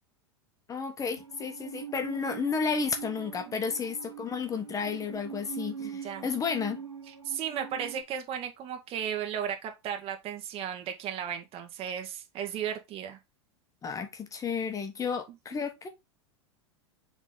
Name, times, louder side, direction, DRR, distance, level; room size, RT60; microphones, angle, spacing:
voice 1, 0.7-6.8 13.8-15.9, left 5 dB, 20° left, 1.2 m, -32 dB
Musical instrument, 1.2-8.0, right 7 dB, 85° right, 1.3 m, -43 dB
voice 2, 3.5-3.8 5.8-6.3 7.2-13.2 15.5-15.6, right 9 dB, 40° right, 1.9 m, -35 dB
7.1 x 3.8 x 3.8 m
hypercardioid pair, 90°, 15 cm